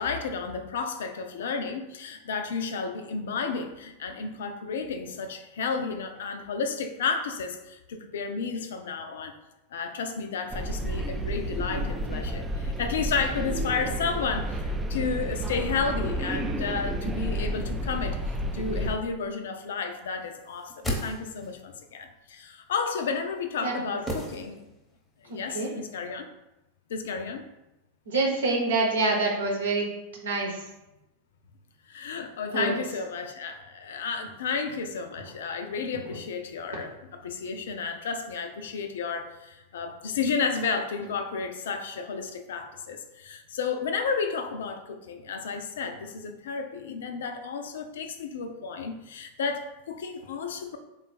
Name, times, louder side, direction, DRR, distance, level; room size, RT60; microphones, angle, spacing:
voice 1, 0.0-9.3 9.7-18.2 18.5-24.6 25.2-26.3 26.9-27.5 31.9-50.8, left 5 dB, 60° left, 6 dB, 0.4 m, -32 dB
sound 1, 10.5-19.0, equal, 15° right, 0.3 m, -31 dB
sound 2, 20.5-21.7 24.1-25.0 25.2-25.3, left 1 dB, 10° left, 0.8 m, -34 dB
voice 2, 25.3-25.7 28.1-30.7 32.5-32.7 36.0-36.1, right 3 dB, 65° right, -1 dB, 1.0 m, -27 dB
3.6 x 2.3 x 4.1 m, 0.96 s
figure-of-eight pair, 90°, 0 cm